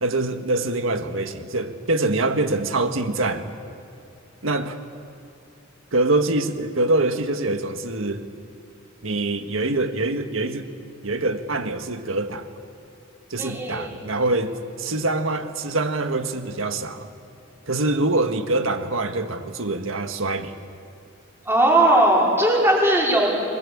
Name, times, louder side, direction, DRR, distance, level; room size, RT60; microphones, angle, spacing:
voice 1, 0.0-3.5 4.4-4.8 5.9-8.3 9.0-10.7 11.0-12.5 13.3-17.1 17.7-20.6, right 2 dB, 75° right, 1.7 m, -24 dB
voice 2, 13.4-13.9 21.4-23.3, right 1 dB, 10° right, 4.9 m, -18 dB
29.0 x 22.0 x 8.7 m
head